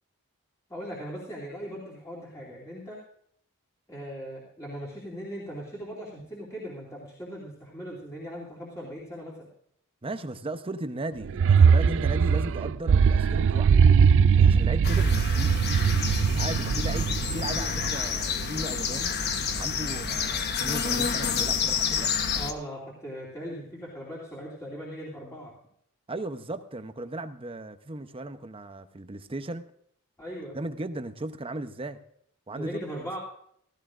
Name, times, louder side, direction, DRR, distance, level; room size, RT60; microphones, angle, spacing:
voice 1, 0.7-3.0 3.9-9.5 22.3-25.5 30.2-30.6 32.5-33.2, equal, 15° left, -6 dB, 2.8 m, -39 dB
voice 2, 10.0-13.7 14.4-15.6 16.3-19.1 19.6-22.1 26.1-29.7 30.5-32.0 32.5-32.8, right 2 dB, 25° right, 9 dB, 0.8 m, -36 dB
sound 1, 11.2-17.6, right 6 dB, 60° right, 0.4 m, -21 dB
sound 2, 14.8-22.5, left 5 dB, 50° left, 1.0 m, -28 dB
16.0 x 15.0 x 2.5 m, 0.68 s
head